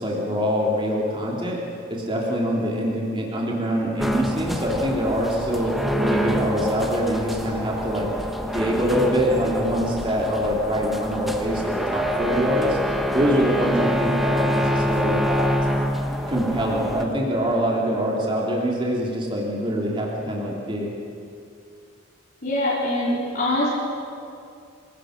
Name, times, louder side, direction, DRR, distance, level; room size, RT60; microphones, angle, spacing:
voice 1, 0.0-1.6 1.9-8.1 8.4-12.8 13.1-15.5 16.3-20.9, equal, 25° right, -3 dB, 3.0 m, -24 dB
sound 1, 4.0-17.1, equal, ahead, 1.2 m, -26 dB
voice 2, 22.4-23.7, left 1 dB, 45° left, -8 dB, 3.9 m, -23 dB
25.5 x 18.0 x 6.6 m, 2.5 s
head